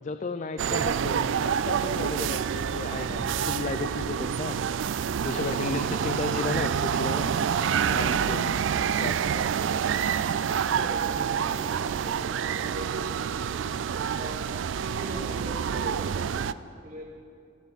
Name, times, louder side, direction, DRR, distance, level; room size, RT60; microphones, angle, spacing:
voice 1, 0.0-7.4 7.9-9.8, left 3 dB, 40° left, 9 dB, 0.4 m, -35 dB
sound 1, 0.6-16.5, right 7 dB, 70° right, 0.3 m, -27 dB
sound 2, 3.1-5.7, equal, 15° right, 1.7 m, -45 dB
voice 2, 10.6-14.4 14.8-17.0, right 1 dB, 45° right, -2 dB, 2.5 m, -41 dB
18.0 x 13.5 x 4.1 m, 2.5 s
head